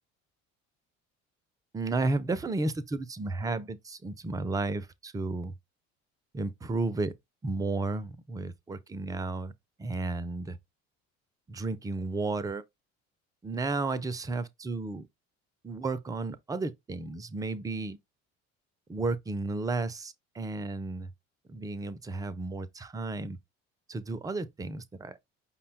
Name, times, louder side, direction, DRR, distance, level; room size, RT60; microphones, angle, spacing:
voice 1, 1.7-5.5 6.3-7.1 7.4-9.5 9.8-10.6 11.5-12.6 13.4-15.1 15.6-18.0 18.9-21.1 21.5-23.4 23.9-25.2, right 3 dB, 10° right, 0.3 m, -33 dB
5.4 x 2.1 x 3.8 m
figure-of-eight pair, 55°, 40 cm